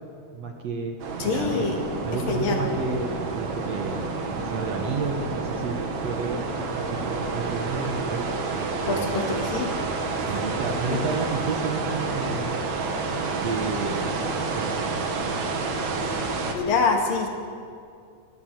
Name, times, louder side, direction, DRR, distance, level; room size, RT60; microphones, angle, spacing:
voice 1, 0.3-1.0 1.2-1.7 2.0-8.3 8.9-9.3 10.3-12.6 13.4-14.9, right 4 dB, 80° right, 3 dB, 1.4 m, -31 dB
sound 1, 1.0-16.5, right 4 dB, 55° right, 2.7 m, -29 dB
voice 2, 1.2-1.8 2.1-2.6 8.9-9.7 10.9-11.0 16.5-17.3, left 4 dB, 60° left, 3 dB, 3.3 m, -25 dB
21.5 x 18.5 x 7.7 m, 2.4 s
omnidirectional pair, 4.8 m